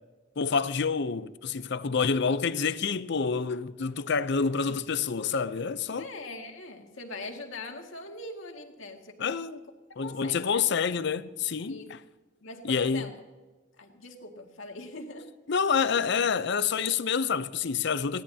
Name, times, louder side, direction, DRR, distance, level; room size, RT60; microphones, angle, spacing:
voice 1, 0.4-6.1 9.2-9.6 10.0-12.0 12.6-13.1 15.5-18.2, left 5 dB, 60° left, 0.6 m, -28 dB
voice 2, 6.0-9.4 10.0-10.6 11.7-12.0 12.4-13.2 13.8-15.3, left 2 dB, 80° left, 2.1 m, -42 dB
20.5 x 16.0 x 2.8 m
head